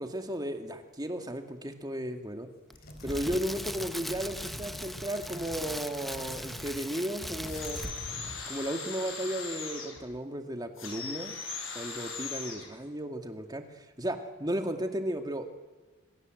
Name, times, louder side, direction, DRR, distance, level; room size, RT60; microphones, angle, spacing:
voice 1, 0.0-2.5 3.0-7.8 8.5-11.3 11.7-15.5, equal, 20° right, 5 dB, 2.3 m, -34 dB
sound 1, 2.7-6.9 7.2-8.5, left 1 dB, 50° left, 4.5 m, -45 dB
Crackle, 2.7-8.2 8.5-8.6, equal, ahead, 0.8 m, -40 dB
sound 2, 7.4-10.0 10.7-12.7, left 5 dB, 70° left, 7.9 m, -39 dB
27.0 x 22.5 x 7.9 m, 1.3 s
head